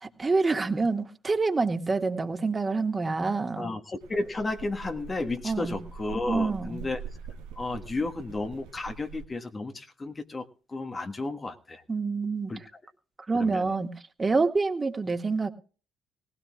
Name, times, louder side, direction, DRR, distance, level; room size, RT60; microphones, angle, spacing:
voice 1, 0.0-3.7 5.4-5.8 6.3-6.8 11.9-12.5 13.3-13.9 14.2-15.5, right 3 dB, 30° right, 5 dB, 1.8 m, -27 dB
voice 2, 3.5-7.0 7.6-11.8 12.5-12.8 13.3-13.7, left 2 dB, 30° left, 5 dB, 1.5 m, -33 dB
sound 1, 4.0-9.3, right 6 dB, 75° right, 1.1 m, -43 dB
19.0 x 16.5 x 2.4 m, 0.37 s
hypercardioid pair, 50°, 0 cm